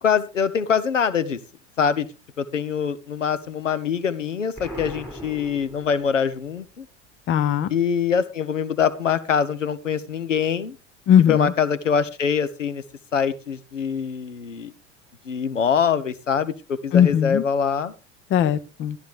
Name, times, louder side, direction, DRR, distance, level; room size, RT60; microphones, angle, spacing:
voice 1, 0.0-1.4 1.8-2.1 2.4-6.8 7.7-10.7 11.3-12.8 13.1-14.7 15.3-17.9, left 7 dB, 85° left, 15 dB, 1.0 m, -24 dB
Explosion, 4.6-6.4, equal, 5° left, 6.6 m, -38 dB
voice 2, 7.3-7.7 11.1-11.5 16.9-17.4 18.3-19.0, left 9 dB, 35° left, 15 dB, 1.0 m, -18 dB
12.5 x 11.5 x 3.4 m, 0.28 s
figure-of-eight pair, 85°, 37 cm